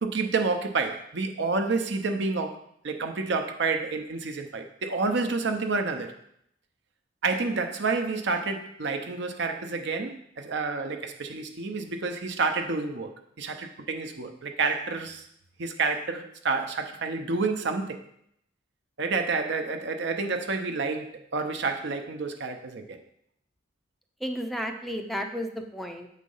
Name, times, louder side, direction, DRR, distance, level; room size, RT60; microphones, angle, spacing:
voice 1, 0.0-2.6 2.8-6.1 7.2-13.1 13.4-15.2 15.6-18.0 19.0-23.0, right 4 dB, 65° right, 0.7 m, -29 dB
voice 2, 24.2-26.1, equal, ahead, 0.4 m, -33 dB
7.5 x 4.1 x 5.5 m
head